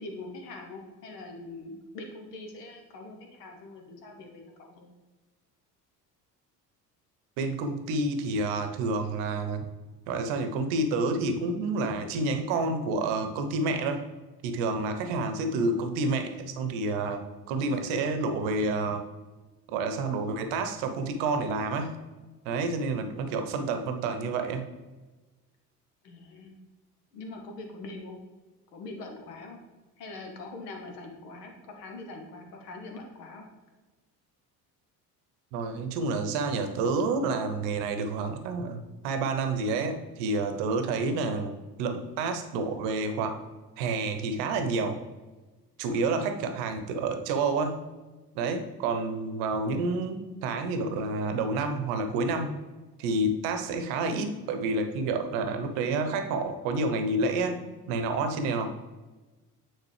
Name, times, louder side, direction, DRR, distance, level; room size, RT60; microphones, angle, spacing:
voice 1, 0.0-4.9 26.0-26.6 27.1-28.2 28.7-29.6 30.0-33.4, left 2 dB, 75° left, 2 dB, 1.1 m, -43 dB
voice 2, 7.4-9.7 10.1-14.0 14.4-19.1 19.7-22.0 22.4-24.6 35.5-43.4 43.8-45.0 45.8-47.8 48.3-52.6 53.0-58.7, right 3 dB, 60° right, 7 dB, 0.9 m, -29 dB
9.1 x 3.9 x 3.3 m, 1.2 s
figure-of-eight pair, 55°, 48 cm